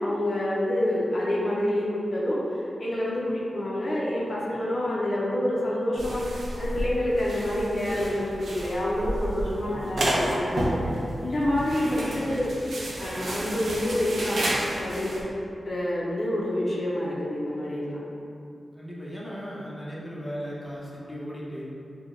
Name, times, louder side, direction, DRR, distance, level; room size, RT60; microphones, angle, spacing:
voice 1, 0.0-10.8 11.2-12.5 13.0-14.4 14.7-15.2 15.6-18.0, left 1 dB, 55° left, -6 dB, 0.5 m, -27 dB
sound 1, 6.0-15.2, right 1 dB, 75° right, 0.5 m, -31 dB
voice 2, 9.7-10.1 12.0-12.4 18.7-21.6, equal, 5° left, -7 dB, 0.7 m, -37 dB
3.5 x 2.1 x 3.0 m, 2.6 s
wide cardioid pair, 90°, 0 cm